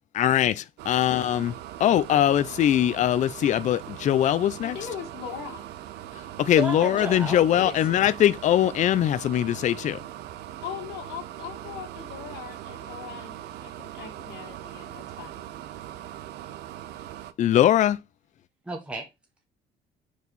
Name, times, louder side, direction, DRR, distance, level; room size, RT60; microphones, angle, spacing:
voice 1, 0.1-1.5 1.8-4.8 6.4-10.0 17.4-18.0, left 11 dB, 45° left, 0.4 m, -22 dB
sound 1, 0.8-17.3, right 12 dB, 80° right, 0.6 m, -40 dB
voice 2, 4.6-5.7 10.6-15.4, left 9 dB, 85° left, 1.8 m, -40 dB
voice 3, 6.5-7.8 18.7-19.1, right 3 dB, 5° right, 1.2 m, -33 dB
4.7 x 4.1 x 5.3 m
cardioid pair, 110°, 17 cm